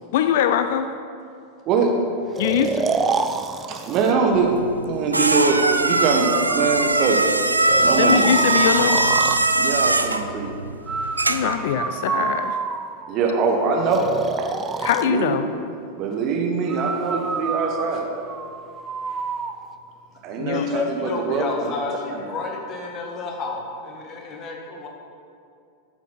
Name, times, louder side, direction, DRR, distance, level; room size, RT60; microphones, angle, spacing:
voice 1, 0.1-0.9 2.4-2.9 7.9-9.1 11.3-12.6 14.8-15.5 20.4-20.6, left 9 dB, 55° left, 9 dB, 0.4 m, -22 dB
Breathing, 2.3-4.1 5.5-7.1 7.7-9.5 10.9-13.1 13.9-15.1 16.7-19.5, right 5 dB, 20° right, 0.4 m, -28 dB
voice 2, 3.7-4.5 4.8-7.2 7.8-8.3 9.5-10.5 13.1-14.1 14.4-14.5 15.0-15.3 15.9-18.1 20.2-21.7 22.1-22.2, right 5 dB, 40° right, 2 dB, 1.4 m, -23 dB
sound 1, 4.3-11.6, right 2 dB, 80° right, 0.4 m, -21 dB
voice 3, 20.4-24.9, left 4 dB, 35° left, 1 dB, 1.7 m, -30 dB
12.5 x 8.1 x 4.3 m, 2.4 s
figure-of-eight pair, 90°, 0 cm